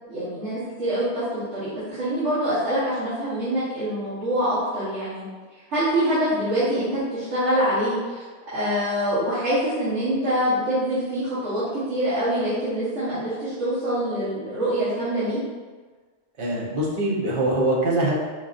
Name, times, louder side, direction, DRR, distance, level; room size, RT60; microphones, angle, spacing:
voice 1, 0.1-5.2 5.7-8.2 8.5-15.4, equal, 75° right, -13 dB, 1.5 m, -25 dB
voice 2, 16.4-18.2, right 1 dB, 55° right, -4 dB, 0.9 m, -23 dB
4.7 x 2.5 x 2.4 m, 1.4 s
omnidirectional pair, 1.2 m